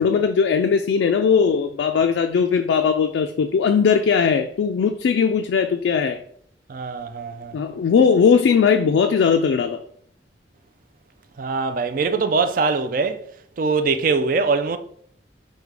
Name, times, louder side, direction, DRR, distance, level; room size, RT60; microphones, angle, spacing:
voice 1, 0.0-6.2 7.5-9.8, left 6 dB, 90° left, 0.3 m, -19 dB
voice 2, 6.7-7.5 11.4-13.2 13.6-14.8, right 4 dB, 50° right, 0.4 m, -22 dB
5.0 x 2.2 x 4.7 m
head